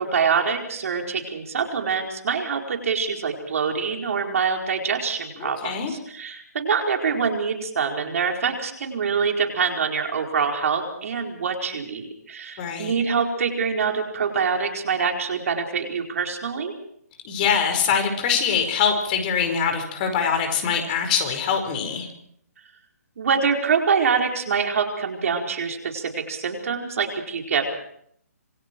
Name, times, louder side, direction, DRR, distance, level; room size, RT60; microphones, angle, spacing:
voice 1, 0.0-16.7 23.2-27.8, right 6 dB, 60° right, 2 dB, 4.7 m, -25 dB
voice 2, 5.4-5.9 12.6-12.9 17.2-22.1, left 6 dB, 30° left, 5 dB, 4.9 m, -23 dB
27.0 x 24.0 x 4.7 m, 0.68 s
hypercardioid pair, 150°, 9 cm